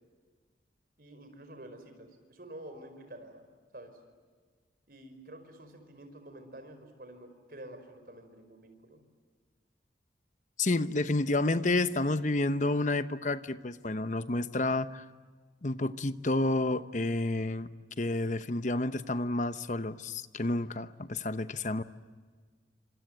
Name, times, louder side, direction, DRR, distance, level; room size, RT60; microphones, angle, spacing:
voice 1, 1.0-3.4 3.7-4.0 4.9-9.0, right 1 dB, 55° right, 7 dB, 5.1 m, -49 dB
voice 2, 10.6-15.0 15.6-17.7 18.0-21.8, left 2 dB, 45° left, 12 dB, 0.9 m, -30 dB
28.5 x 26.0 x 8.1 m, 1.5 s
head